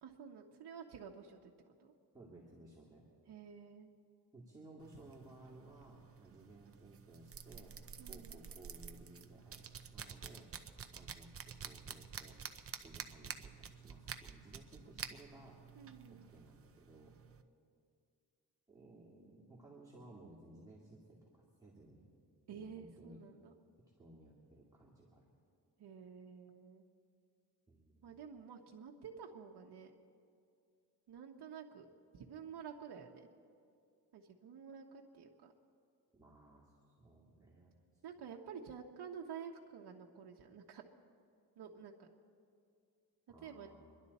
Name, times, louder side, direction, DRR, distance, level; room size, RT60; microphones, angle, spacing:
voice 1, 0.0-1.9 3.3-3.9 8.0-8.5 15.8-16.3 22.5-23.5 25.8-26.9 28.0-29.9 31.1-33.3 34.1-35.5 38.0-40.8 41.6-42.1 43.4-43.7, right 7 dB, 80° right, 0 dB, 1.0 m, -51 dB
voice 2, 2.1-3.0 4.3-7.7 8.1-10.5 10.9-12.4 12.8-15.6 16.1-17.1 18.7-22.1 22.5-23.2 24.0-25.3 27.7-28.1 36.1-37.7 43.3-44.0, right 2 dB, 10° right, -4 dB, 2.3 m, -58 dB
sound 1, 4.8-17.4, right 6 dB, 35° right, 0.7 m, -50 dB
26.5 x 11.0 x 4.2 m, 2.4 s
cardioid pair, 110°, 39 cm